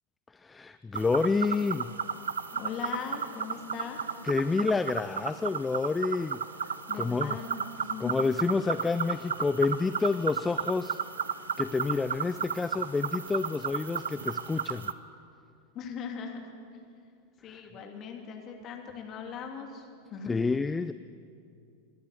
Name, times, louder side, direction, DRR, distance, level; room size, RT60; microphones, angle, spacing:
voice 1, 0.3-1.9 4.2-7.4 8.0-11.0 11.6-14.9 17.4-17.6 20.3-20.9, left 4 dB, 10° left, 13 dB, 0.4 m, -29 dB
sound 1, 0.9-14.9, right 7 dB, 65° right, 0.7 m, -34 dB
voice 2, 2.5-4.0 6.9-8.1 15.7-16.4 17.4-19.8 20.1-20.3, left 6 dB, 30° left, 2 dB, 3.0 m, -39 dB
28.0 x 12.0 x 8.4 m, 2.5 s
figure-of-eight pair, 90°, 0 cm